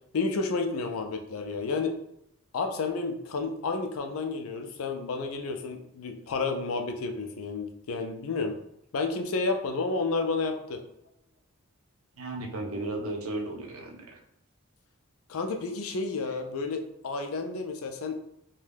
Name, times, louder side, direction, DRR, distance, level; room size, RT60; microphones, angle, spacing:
voice 1, 0.1-1.9 2.5-8.5 8.9-10.8 15.3-18.2, left 3 dB, 80° left, 5 dB, 0.4 m, -31 dB
voice 2, 12.2-14.2, right 2 dB, 85° right, 1 dB, 0.6 m, -35 dB
2.6 x 2.2 x 3.3 m, 0.79 s
head